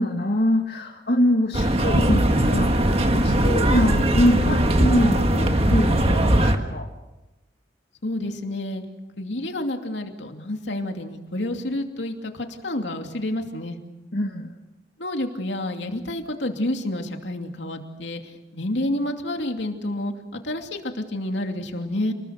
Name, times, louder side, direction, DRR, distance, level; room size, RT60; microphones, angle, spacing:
voice 1, 0.0-6.9 14.1-14.5, equal, 65° left, 0 dB, 1.9 m, -24 dB
sound 1, 1.5-6.6, right 1 dB, 35° right, 1.7 m, -20 dB
voice 2, 8.0-8.8 9.2-13.8 15.0-18.2 18.5-22.1, left 1 dB, 80° left, 4 dB, 2.7 m, -29 dB
29.0 x 21.0 x 6.5 m, 1.0 s
head